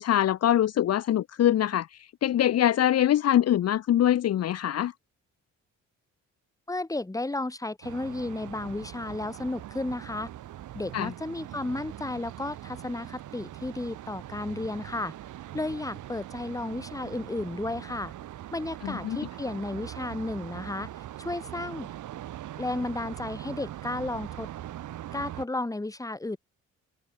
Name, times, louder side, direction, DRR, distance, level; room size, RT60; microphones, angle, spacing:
voice 1, 0.0-1.9 2.2-4.9 10.9-11.1 18.8-19.2, left 11 dB, 55° left, 0.8 m, -23 dB
voice 2, 6.7-10.3 10.7-15.1 15.5-18.1 18.5-21.9 22.6-24.5 25.1-26.4, left 2 dB, 10° left, 2.3 m, -33 dB
sound 1, 7.8-25.5, right 13 dB, 80° right, 7.4 m, -41 dB
cardioid pair, 90°, 30 cm